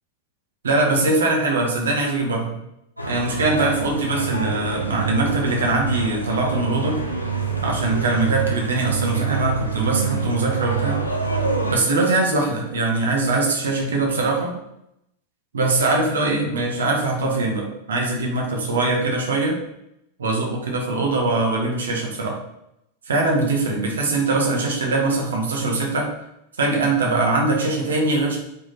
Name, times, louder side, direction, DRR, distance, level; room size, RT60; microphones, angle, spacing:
voice 1, 0.6-2.6 3.1-7.0 7.6-11.0 11.7-14.5 15.5-19.6 20.2-22.4 23.1-26.1 26.6-28.4, right 2 dB, 65° right, -1 dB, 2.0 m, -22 dB
sound 1, 3.0-11.8, right 5 dB, 90° left, 1.1 m, -26 dB
6.8 x 5.6 x 4.2 m, 0.81 s
figure-of-eight pair, 90°, 0 cm